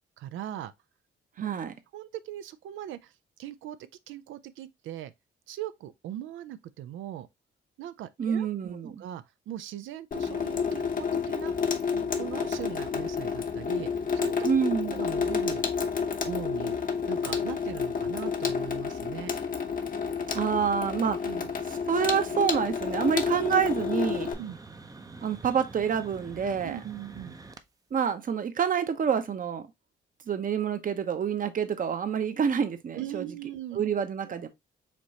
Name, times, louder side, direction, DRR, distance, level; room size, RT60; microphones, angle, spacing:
voice 1, 0.2-0.7 1.4-1.5 1.9-3.1 3.4-3.8 4.1-5.1 5.5-7.3 7.8-14.5 14.9-15.6 16.2-16.8 17.1-19.3 21.2-21.5 24.4-24.6 26.6-27.3 32.9-33.8, right 11 dB, 75° right, 0.4 m, -40 dB
voice 2, 1.4-1.7 8.2-9.0 14.4-15.0 20.3-21.2 21.7-24.3 25.2-26.8 27.9-29.7 30.3-33.3 33.7-34.5, right 7 dB, 45° right, 0.8 m, -27 dB
Water tap faucet / Sink (filling or washing), 10.1-24.3, left 6 dB, 45° left, 0.8 m, -30 dB
sound 1, 23.0-27.7, right 3 dB, 20° right, 0.6 m, -46 dB
5.1 x 3.1 x 2.8 m
cardioid pair, 90°, 20 cm